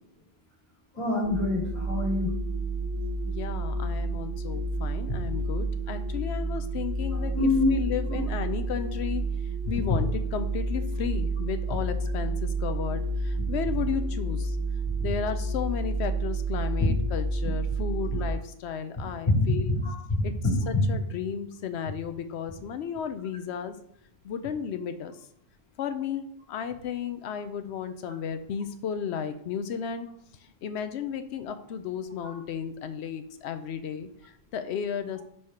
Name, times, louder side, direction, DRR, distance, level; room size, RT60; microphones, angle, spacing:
voice 1, 0.9-2.3 7.3-7.7 19.3-19.4 19.8-20.2 20.7-20.8, left 3 dB, 25° left, -5 dB, 2.5 m, -25 dB
sound 1, 1.2-18.3, right 2 dB, 80° right, 1.1 m, -30 dB
voice 2, 3.3-9.2 9.7-14.6 15.0-19.7 20.2-20.3 20.7-23.7 24.2-25.1 25.8-30.1 30.4-35.2, left 8 dB, 90° left, 9 dB, 0.9 m, -34 dB
4.8 x 4.4 x 5.5 m, 0.67 s
omnidirectional pair, 1.1 m